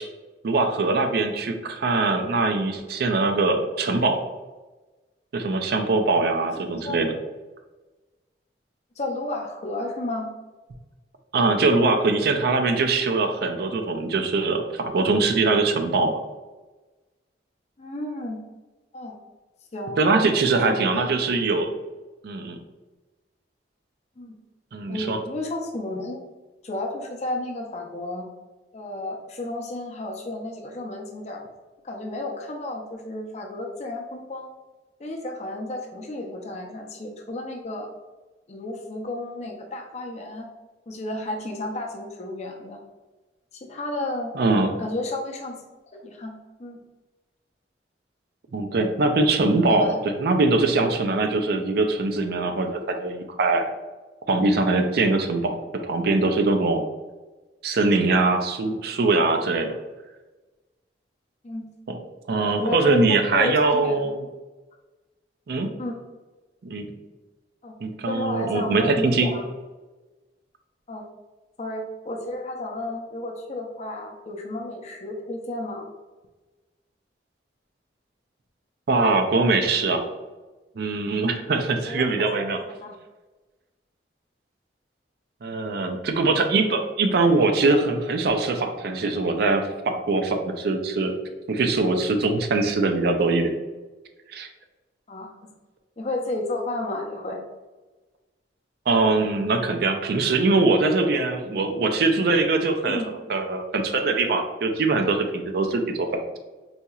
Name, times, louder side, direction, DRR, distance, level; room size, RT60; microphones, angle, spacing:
voice 1, 0.4-4.2 5.3-7.1 11.3-16.2 20.0-21.7 22.2-22.6 24.7-25.2 44.4-44.8 48.5-53.6 54.3-56.9 57.6-59.8 61.9-62.0 62.3-64.2 65.5-65.7 66.6-66.9 67.8-69.3 78.9-80.0 80.8-82.6 85.4-91.1 91.5-93.5 94.3-94.5 98.9-106.4, right 3 dB, 60° right, 6 dB, 0.4 m, -22 dB
voice 2, 9.0-10.3 17.8-18.4 18.9-19.2 19.7-20.0 20.5-21.1 24.2-24.4 24.9-26.2 26.6-28.3 28.7-31.4 31.8-34.5 35.0-37.9 38.5-40.5 40.9-42.8 43.5-44.3 44.8-45.6 45.9-46.3 46.6-46.8 49.6-50.0 61.4-61.6 62.4-64.1 65.8-66.0 67.6-67.7 68.1-69.5 70.9-71.0 71.6-75.9 81.9-82.1 82.4-83.0 95.1-95.3 96.0-97.4 102.9-103.1, left 2 dB, 40° left, 1 dB, 0.5 m, -32 dB
4.2 x 2.8 x 2.3 m, 1.2 s
head